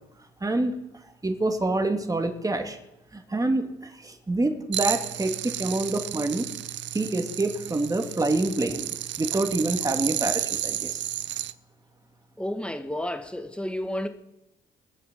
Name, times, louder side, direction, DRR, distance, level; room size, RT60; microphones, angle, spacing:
voice 1, 0.4-0.8 1.2-2.8 3.1-6.5 6.9-11.0, right 2 dB, 15° right, 2.3 m, -27 dB
sound 1, 4.7-11.5, right 12 dB, 65° right, 0.7 m, -32 dB
voice 2, 12.4-14.1, left 1 dB, 5° left, 1.7 m, -31 dB
23.5 x 7.9 x 6.9 m
cardioid pair, 90°, 20 cm